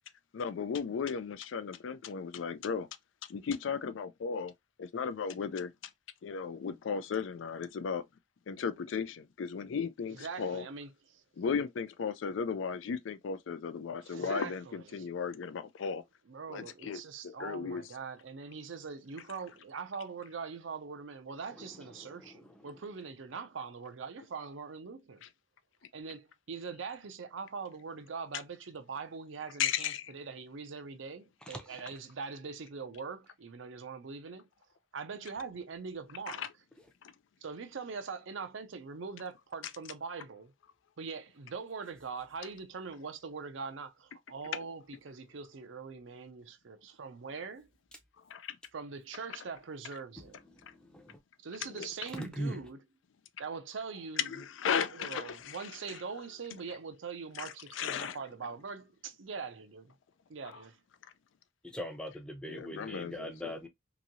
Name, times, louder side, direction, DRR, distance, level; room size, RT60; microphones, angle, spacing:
voice 1, 0.3-2.9 3.3-4.5 4.8-5.7 6.2-8.0 8.5-10.6 11.4-16.0 16.5-17.8 29.6-30.1 36.3-36.5 37.0-37.1 48.3-48.6 51.8-51.9 54.2-56.0 57.4-58.2 62.5-63.5, left 6 dB, 75° left, 0.4 m, -35 dB
voice 2, 10.1-11.2 14.0-15.1 16.3-25.2 25.9-34.5 34.9-36.5 37.4-40.5 41.0-47.7 48.7-50.4 51.4-52.8 53.4-54.4 54.7-59.9 60.3-60.8, right 5 dB, 75° right, 0.6 m, -42 dB
voice 3, 21.6-22.6 31.5-31.6 50.5-51.2 52.1-52.6 61.6-63.7, equal, 5° left, 0.6 m, -41 dB
3.0 x 2.7 x 2.5 m
head